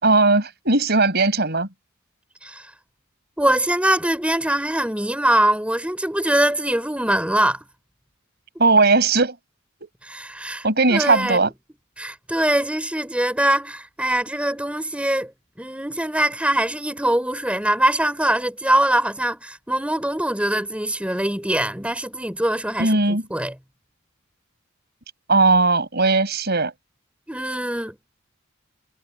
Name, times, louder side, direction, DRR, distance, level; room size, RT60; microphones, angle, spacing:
voice 1, 0.0-1.7 8.6-9.3 9.8-9.9 10.6-11.5 22.8-23.2 25.3-26.7, right 3 dB, 50° right, 5.5 m, -18 dB
voice 2, 3.4-7.6 10.1-11.5 12.0-15.3 15.6-23.5 27.3-28.0, right 1 dB, 5° right, 4.0 m, -23 dB
head